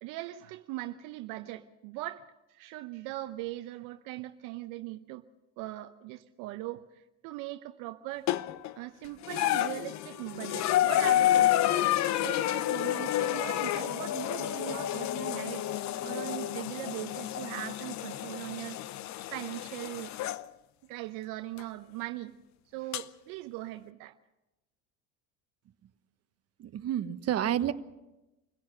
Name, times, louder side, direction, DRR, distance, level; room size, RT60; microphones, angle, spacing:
voice 1, 0.0-5.2 5.6-8.3 8.8-15.7 16.0-18.8 19.3-20.1 20.8-22.4 22.7-24.2, right 16 dB, 70° right, 0.9 m, -40 dB
sound 1, 8.3-8.7 9.2-20.4 21.6-21.7 22.9-23.0, left 13 dB, 55° left, 0.9 m, -29 dB
voice 2, 26.6-27.7, right 11 dB, 45° right, 1.3 m, -29 dB
26.5 x 16.5 x 6.5 m
supercardioid pair, 80°, 34 cm